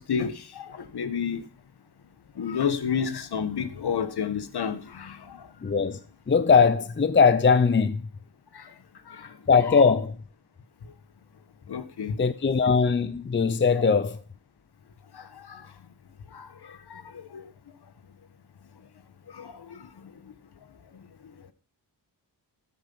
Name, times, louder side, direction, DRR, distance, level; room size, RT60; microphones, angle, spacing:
voice 1, 0.0-1.4 2.4-5.4 8.5-8.6 9.1-9.3 9.6-9.9 11.7-12.2 13.7-13.9 15.1-15.6 16.3-16.5 16.9-17.0 17.3-17.4 19.3-19.8, left 7 dB, 65° left, 1.4 m, -31 dB
voice 2, 5.6-6.0 6.3-8.1 9.5-10.1 12.2-14.2, left 5 dB, 25° left, 0.7 m, -20 dB
12.0 x 7.7 x 5.5 m
wide cardioid pair, 115°, 42 cm